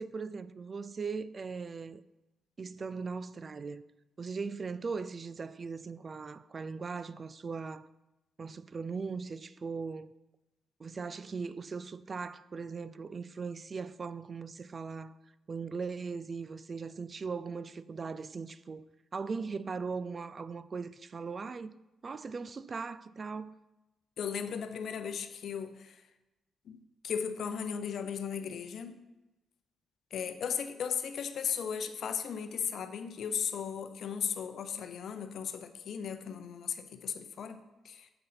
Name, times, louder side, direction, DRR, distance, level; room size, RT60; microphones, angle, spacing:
voice 1, 0.0-2.0 2.6-3.8 4.2-7.9 8.4-10.1 10.8-15.1 15.5-18.8 19.1-21.7 22.0-23.5, right 5 dB, 40° right, 0.3 m, -39 dB
voice 2, 24.2-26.1 26.7-26.8 27.0-29.0 30.1-38.1, left 7 dB, 70° left, 0.6 m, -36 dB
7.8 x 3.9 x 5.7 m
cardioid pair, 70°, 0 cm